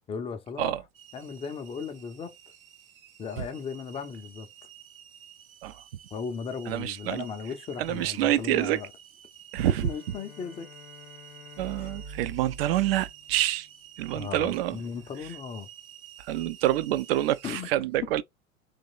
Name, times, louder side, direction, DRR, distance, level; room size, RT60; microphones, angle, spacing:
voice 1, 0.1-0.8 1.1-2.3 3.2-4.5 6.1-8.9 9.8-10.7 11.8-11.9 14.1-15.7 17.4-17.7, left 6 dB, 15° left, 0.5 m, -36 dB
sound 1, 0.9-17.5, right 10 dB, 75° right, 0.9 m, -51 dB
voice 2, 6.7-7.2 7.8-8.8 9.5-9.9 11.6-13.7 14.0-14.8 16.2-18.2, right 13 dB, 45° right, 0.5 m, -27 dB
Bowed string instrument, 9.6-14.0, left 7 dB, 85° left, 0.7 m, -52 dB
3.3 x 3.0 x 3.9 m
figure-of-eight pair, 90°, 42 cm